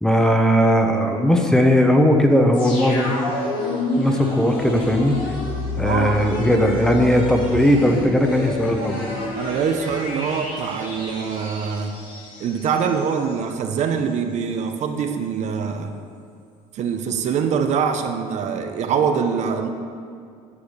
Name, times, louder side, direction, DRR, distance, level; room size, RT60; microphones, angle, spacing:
voice 1, 0.0-3.1 4.0-5.2 5.8-9.0, equal, 5° left, 3 dB, 0.9 m, -18 dB
sound 1, 2.5-13.3 13.7-13.8, left 1 dB, 80° left, 2.5 m, -29 dB
voice 2, 5.8-6.2 9.4-12.0 12.4-15.9 16.7-19.7, right 6 dB, 55° right, 6 dB, 0.7 m, -24 dB
10.0 x 4.7 x 6.6 m, 2.3 s
cardioid pair, 110°, 14 cm